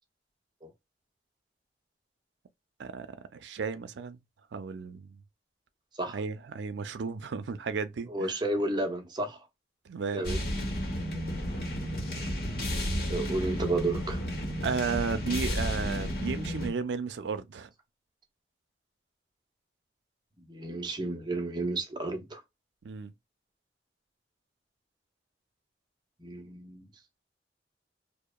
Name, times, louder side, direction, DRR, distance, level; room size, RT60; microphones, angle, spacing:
voice 1, 3.3-4.2 4.5-5.2 6.1-8.3 9.9-10.2 14.6-17.7 22.8-23.1, right 5 dB, 85° right, 0.4 m, -34 dB
voice 2, 8.1-9.4 10.1-10.4 13.1-14.2 20.5-22.4 26.2-26.9, right 2 dB, 25° right, 0.6 m, -32 dB
sound 1, 10.2-16.7, equal, 55° left, 0.9 m, -32 dB
2.8 x 2.0 x 2.2 m
head